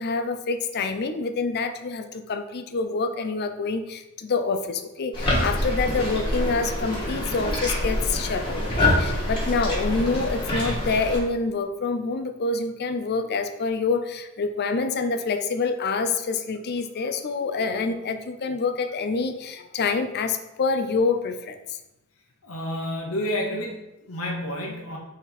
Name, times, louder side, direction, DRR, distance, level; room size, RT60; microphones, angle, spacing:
voice 1, 0.0-21.8, left 4 dB, 50° left, 9 dB, 0.5 m, -27 dB
sound 1, 5.1-11.2, left 1 dB, 25° left, 2.0 m, -26 dB
voice 2, 22.4-25.0, left 1 dB, 70° left, -1 dB, 1.1 m, -30 dB
5.8 x 4.3 x 4.1 m, 0.94 s
head